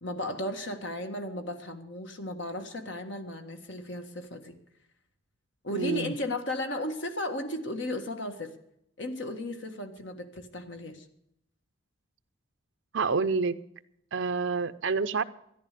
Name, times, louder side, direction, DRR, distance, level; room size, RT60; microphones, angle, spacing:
voice 1, 0.0-4.6 5.6-8.5 9.0-11.0, left 1 dB, 60° left, 6 dB, 1.7 m, -35 dB
voice 2, 5.7-6.1 12.9-13.6 14.1-15.2, right 4 dB, 65° right, 11 dB, 0.6 m, -28 dB
13.5 x 11.0 x 6.7 m, 0.76 s
head